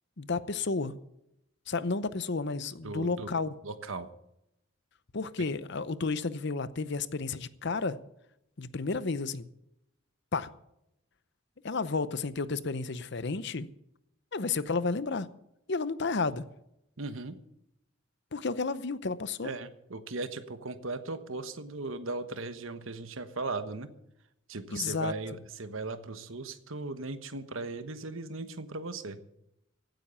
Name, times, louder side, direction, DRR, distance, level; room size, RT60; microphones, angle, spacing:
voice 1, 0.2-0.9 1.7-3.5 5.1-8.0 8.6-9.5 10.3-10.5 11.6-13.7 14.3-15.3 15.7-16.4 18.3-19.5 24.7-25.1, left 4 dB, 55° left, 0.8 m, -32 dB
voice 2, 2.8-3.3 3.6-4.1 5.4-5.5 17.0-17.4 19.4-23.9 24.5-29.2, right 3 dB, 70° right, 1.2 m, -38 dB
16.0 x 9.2 x 6.9 m
head